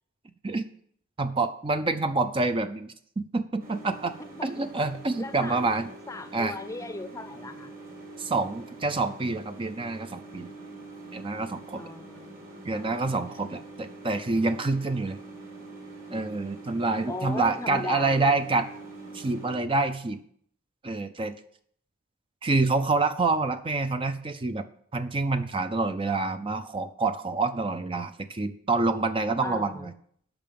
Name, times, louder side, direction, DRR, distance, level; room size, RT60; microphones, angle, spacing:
voice 1, 1.2-4.1 4.4-5.9 6.3-6.6 8.2-10.5 11.1-11.9 12.6-15.2 16.1-18.7 19.1-20.2 20.8-21.4 22.4-24.6 24.9-29.9, right 3 dB, 25° right, 9 dB, 0.5 m, -27 dB
sound 1, 3.6-19.6, right 2 dB, 45° right, 2.9 m, -45 dB
voice 2, 4.2-4.6 5.2-5.6 6.1-7.7 11.8-13.0 17.1-18.4 29.4-29.9, left 2 dB, 15° left, 10 dB, 0.6 m, -38 dB
8.9 x 5.8 x 7.5 m, 0.64 s
head